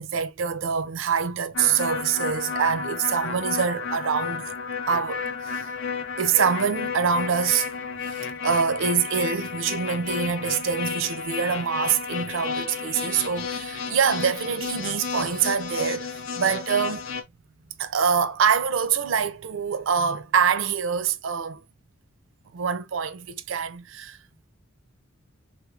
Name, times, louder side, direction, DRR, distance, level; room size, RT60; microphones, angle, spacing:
voice 1, 0.0-4.5 4.9-5.7 6.2-7.7 8.0-17.0 17.8-21.6 22.5-24.2, right 7 dB, 70° right, 0.4 m, -25 dB
sound 1, 1.5-17.2, left 5 dB, 70° left, 0.5 m, -32 dB
3.3 x 3.2 x 2.4 m
head